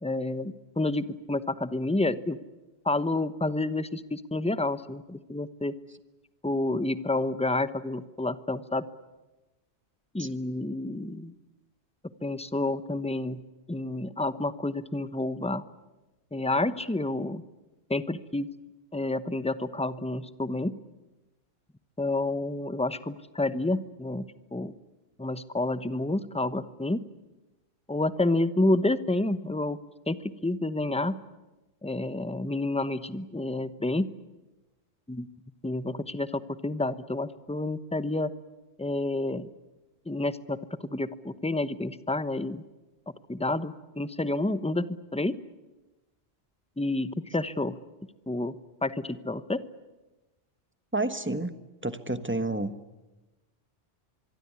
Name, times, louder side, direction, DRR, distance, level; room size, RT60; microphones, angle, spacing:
voice 1, 0.0-2.4 2.8-5.8 6.4-8.9 10.1-11.3 12.2-13.4 13.7-15.6 16.3-17.4 17.9-18.5 18.9-20.8 22.0-24.7 25.2-27.0 27.9-29.8 30.1-31.2 31.8-34.1 35.1-35.3 35.6-38.3 38.8-39.5 40.1-40.6 40.8-42.6 43.3-44.9 45.1-45.3 46.8-47.8 48.3-48.5 48.8-49.6, left 2 dB, 5° left, 13 dB, 0.9 m, -29 dB
voice 2, 50.9-51.5 51.8-52.7, right 2 dB, 10° right, 11 dB, 1.3 m, -29 dB
24.5 x 24.0 x 9.6 m, 1.1 s
omnidirectional pair, 1.1 m